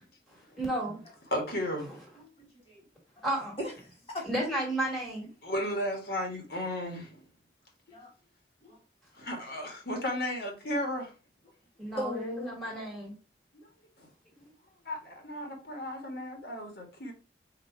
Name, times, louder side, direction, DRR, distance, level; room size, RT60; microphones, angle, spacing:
voice 1, 0.6-1.0 3.2-3.6 4.2-5.3 11.8-13.1, right 1 dB, ahead, 1.5 m, -32 dB
voice 2, 1.3-1.9 5.4-7.2 9.1-11.1 13.5-13.7 14.0-14.1 14.4-14.5 14.8-17.1, left 1 dB, 60° left, 1.4 m, -34 dB
voice 3, 2.2-2.8 3.6-4.3 7.9-8.1 8.6-8.8 11.9-12.6, left 1 dB, 30° left, 1.3 m, -38 dB
4.0 x 2.6 x 4.5 m
head